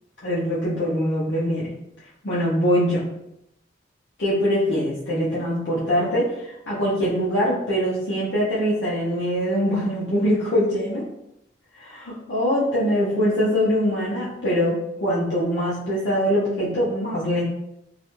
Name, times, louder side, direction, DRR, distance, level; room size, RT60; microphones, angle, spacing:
voice 1, 0.2-1.7 2.2-3.0 4.2-11.0 11.8-17.4, equal, 80° left, -8 dB, 0.7 m, -23 dB
2.4 x 2.1 x 2.9 m, 0.81 s
head